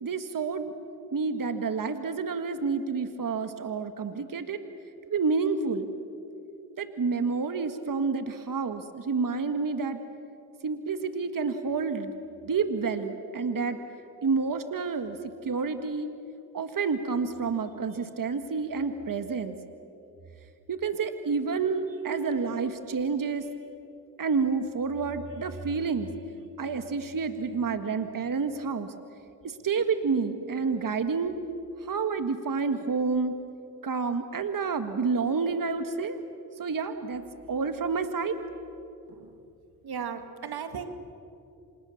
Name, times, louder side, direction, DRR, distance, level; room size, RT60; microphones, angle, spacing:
voice 1, 0.0-0.7 1.1-4.6 5.1-5.9 6.8-10.0 10.6-12.1 12.5-13.8 14.2-16.1 16.5-19.6 20.7-23.5 24.2-26.1 26.6-28.9 29.4-31.4 31.8-33.4 33.8-36.2 36.6-38.4, right 5 dB, 60° right, 9 dB, 1.8 m, -29 dB
voice 2, 39.8-40.9, right 7 dB, 80° right, 8 dB, 1.9 m, -36 dB
29.0 x 26.0 x 7.2 m, 2.7 s
cardioid pair, 50°, 38 cm